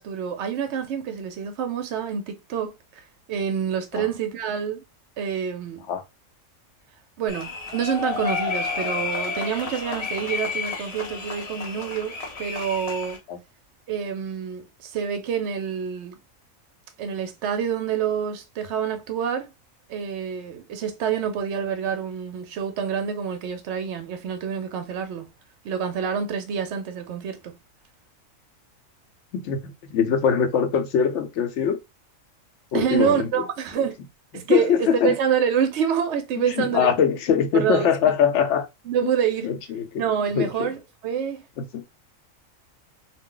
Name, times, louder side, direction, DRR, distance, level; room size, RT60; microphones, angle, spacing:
voice 1, 0.0-4.8 5.2-5.8 7.2-13.2 13.9-16.2 17.0-19.5 19.9-25.3 25.6-27.6 32.7-34.0 34.3-36.9 37.5-38.1 38.9-39.5 40.0-41.4, right 7 dB, 65° right, 0.7 m, -27 dB
sound 1, 7.3-13.2, left 4 dB, 40° left, 0.5 m, -31 dB
voice 2, 29.3-31.8 32.7-33.3 34.3-35.2 36.6-38.7 39.4-40.0 40.4-40.7 41.6-41.8, left 7 dB, 65° left, 0.9 m, -22 dB
2.4 x 2.1 x 3.7 m
omnidirectional pair, 1.4 m